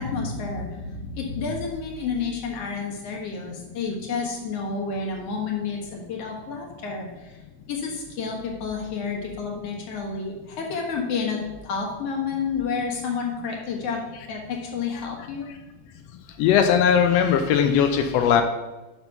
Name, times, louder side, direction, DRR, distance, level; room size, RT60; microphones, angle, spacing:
voice 1, 0.0-7.4 7.7-14.0 14.3-15.5, left 5 dB, 60° left, -1 dB, 2.4 m, -30 dB
voice 2, 16.4-18.4, left 8 dB, 80° left, 5 dB, 1.5 m, -19 dB
6.0 x 5.4 x 5.7 m, 1.1 s
omnidirectional pair, 3.3 m